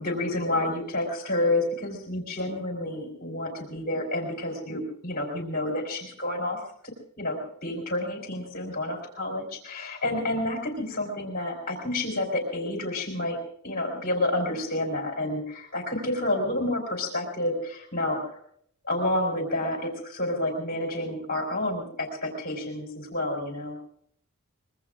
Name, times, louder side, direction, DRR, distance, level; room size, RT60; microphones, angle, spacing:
voice 1, 0.0-13.4 13.6-18.3 18.8-23.8, left 1 dB, 45° left, 2 dB, 3.8 m, -29 dB
24.0 x 22.0 x 2.5 m, 0.66 s
head